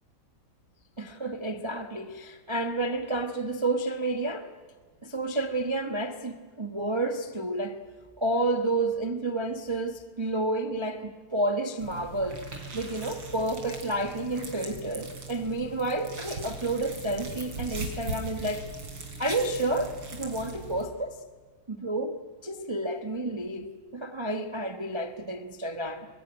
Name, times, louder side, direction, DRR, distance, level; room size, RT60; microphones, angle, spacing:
voice 1, 1.0-4.5 5.0-7.8 8.2-12.4 12.7-18.7 19.2-21.2 21.7-22.2 22.4-23.7 23.9-26.1, right 2 dB, 20° right, 0.9 m, -30 dB
sound 1, 11.8-20.9, right 2 dB, 80° right, 4.6 m, -40 dB
25.0 x 21.5 x 9.9 m
omnidirectional pair, 2.3 m